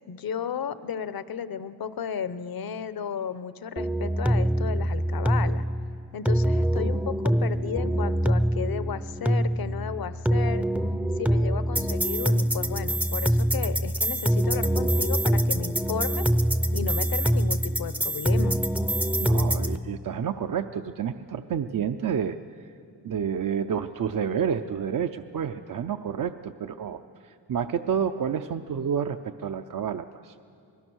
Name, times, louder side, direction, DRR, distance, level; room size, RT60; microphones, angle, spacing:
voice 1, 0.1-5.6 6.1-10.7 11.2-16.3 16.7-18.6, left 8 dB, 60° left, 13 dB, 0.9 m, -34 dB
sound 1, 3.8-19.8, right 1 dB, 5° right, 0.6 m, -25 dB
voice 2, 19.2-22.4 23.0-30.3, right 7 dB, 55° right, 7 dB, 0.6 m, -29 dB
26.5 x 20.5 x 6.3 m, 2.4 s
cardioid pair, 105°, 41 cm